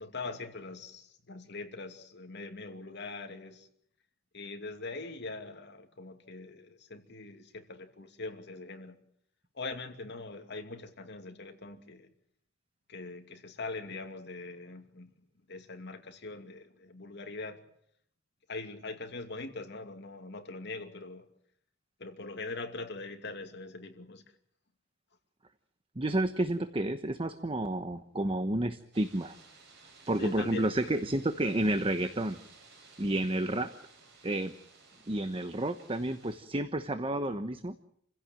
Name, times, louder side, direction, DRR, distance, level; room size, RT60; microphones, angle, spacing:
voice 1, 0.0-3.7 4.3-9.0 9.5-12.1 12.9-15.1 15.5-17.6 18.5-21.3 22.0-24.2 30.2-30.7 31.5-31.6, left 3 dB, 60° left, 2.6 m, -42 dB
voice 2, 26.0-29.4 30.1-32.4 33.0-33.7 34.2-34.5 35.1-37.7, right 1 dB, 30° right, 1.1 m, -30 dB
sound 1, 28.9-36.4, right 4 dB, 55° right, 7.5 m, -57 dB
28.5 x 16.5 x 9.0 m
head